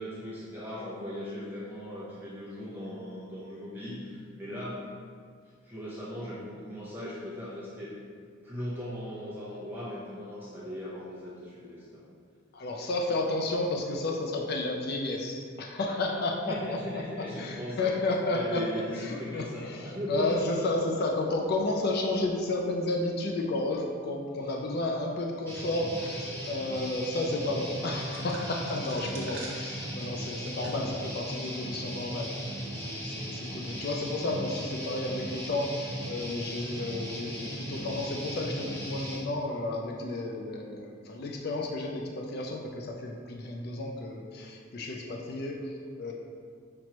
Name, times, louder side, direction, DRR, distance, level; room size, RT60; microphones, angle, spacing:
voice 1, 0.0-4.9 5.6-8.0 8.4-12.0 16.5-17.9 18.3-20.4 24.4-24.7 30.6-30.8, left 1 dB, 10° right, -8 dB, 0.8 m, -38 dB
voice 2, 12.5-16.6 16.9-18.6 18.9-46.1, left 2 dB, 50° left, 1 dB, 0.4 m, -32 dB
Guitar, 25.5-39.2, equal, 10° left, 1.0 m, -37 dB
sound 1, 28.0-31.0 31.4-31.5 32.3-32.7, right 2 dB, 70° right, 0.8 m, -47 dB
5.9 x 3.1 x 2.9 m, 2.3 s
head